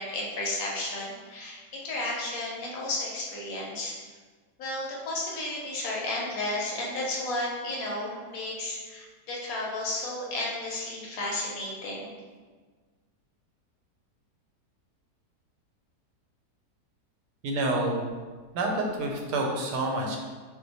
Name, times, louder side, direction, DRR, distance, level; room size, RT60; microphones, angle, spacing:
voice 1, 0.0-3.9 4.6-12.1, left 2 dB, 70° left, -3 dB, 1.0 m, -33 dB
voice 2, 17.4-18.0 18.5-20.2, right 2 dB, 85° right, 0 dB, 1.2 m, -28 dB
2.7 x 2.1 x 4.0 m, 1.4 s
omnidirectional pair, 1.7 m